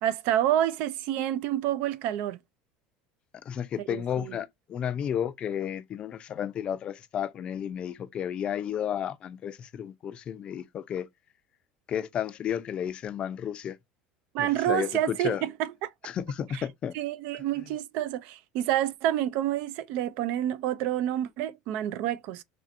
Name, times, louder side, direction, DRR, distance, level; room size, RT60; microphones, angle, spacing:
voice 1, 0.0-2.4 3.8-4.4 14.3-15.9 16.5-16.6 16.9-22.4, right 12 dB, 70° right, 0.3 m, -28 dB
voice 2, 3.5-11.1 11.9-13.8 14.4-15.4 16.0-16.9, left 9 dB, 40° left, 0.4 m, -32 dB
3.2 x 2.7 x 2.5 m
supercardioid pair, 105°, 3 cm